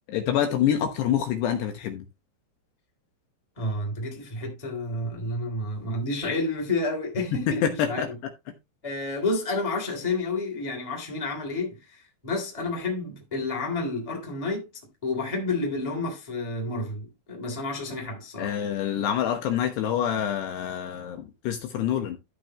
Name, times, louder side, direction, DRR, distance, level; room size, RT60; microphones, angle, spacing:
voice 1, 0.1-2.0 7.5-8.1 18.4-22.2, left 9 dB, 70° left, 3.0 m, -26 dB
voice 2, 3.6-8.0 8.8-12.0 12.2-14.7 15.0-18.5, left 2 dB, 10° left, 2.5 m, -30 dB
13.5 x 6.1 x 3.0 m
omnidirectional pair, 5.4 m